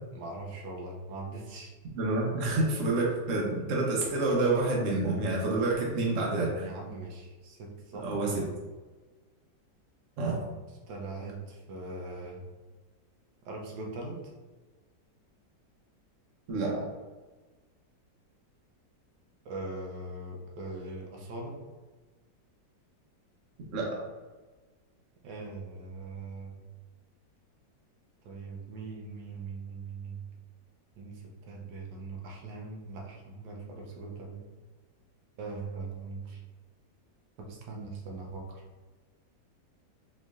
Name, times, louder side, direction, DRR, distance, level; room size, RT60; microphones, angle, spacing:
voice 1, 0.1-1.7 6.6-8.1 10.9-12.4 13.4-14.3 19.4-21.6 25.2-26.6 28.2-30.2 31.0-34.5 35.4-36.4 37.4-38.6, right 3 dB, 80° right, -1 dB, 1.3 m, -41 dB
voice 2, 1.9-6.7 8.0-8.4 10.2-10.4 16.5-16.8 23.7-24.0, right 2 dB, 55° right, -2 dB, 1.1 m, -28 dB
4.4 x 3.0 x 2.4 m, 1.3 s
omnidirectional pair, 1.9 m